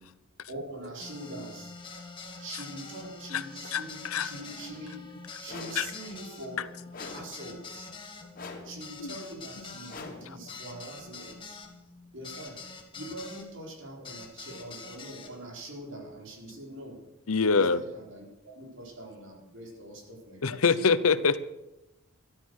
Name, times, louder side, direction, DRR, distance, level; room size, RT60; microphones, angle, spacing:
voice 1, 0.5-1.7 2.4-5.1 5.4-6.7 7.1-7.9 8.6-11.6 12.1-12.7 12.9-20.8, right 1 dB, 60° right, 1 dB, 4.6 m, -43 dB
sound 1, 1.0-13.5 14.0-15.3, left 4 dB, 25° left, 2.3 m, -45 dB
voice 2, 3.7-4.3 5.8-5.9 9.0-9.1 17.3-17.8 20.4-21.4, left 5 dB, 85° left, 15 dB, 0.9 m, -24 dB
sound 2, 5.5-5.9 6.9-7.4 8.3-8.8 9.9-10.4, left 3 dB, 40° left, 2.6 m, -43 dB
13.5 x 13.0 x 6.4 m, 0.92 s
head